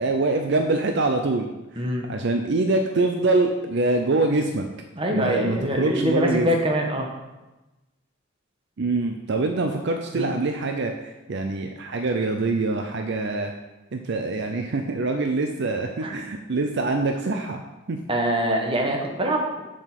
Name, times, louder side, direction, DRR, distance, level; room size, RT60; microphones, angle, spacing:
voice 1, 0.0-1.5 1.7-4.7 5.1-6.5 8.8-13.5 13.9-17.6 17.9-18.0, right 3 dB, 55° right, 4 dB, 0.5 m, -24 dB
voice 2, 1.8-2.1 5.0-7.1 10.1-10.3 16.0-16.1 18.1-19.6, equal, 25° right, 1 dB, 1.1 m, -24 dB
7.3 x 5.2 x 5.9 m, 1.1 s
head